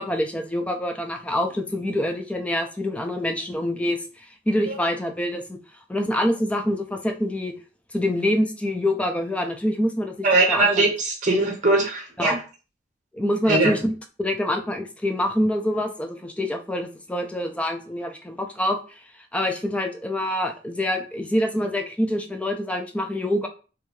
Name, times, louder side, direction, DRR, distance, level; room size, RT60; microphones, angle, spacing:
voice 1, 0.0-4.0 4.5-5.6 5.9-7.5 7.9-10.8 12.2-12.4 13.1-13.9 14.2-18.8 19.3-23.5, left 1 dB, 5° left, 5 dB, 0.3 m, -25 dB
voice 2, 10.2-12.4 13.5-13.7, right 2 dB, 45° right, 1 dB, 0.8 m, -20 dB
2.6 x 2.3 x 3.0 m, 0.36 s
head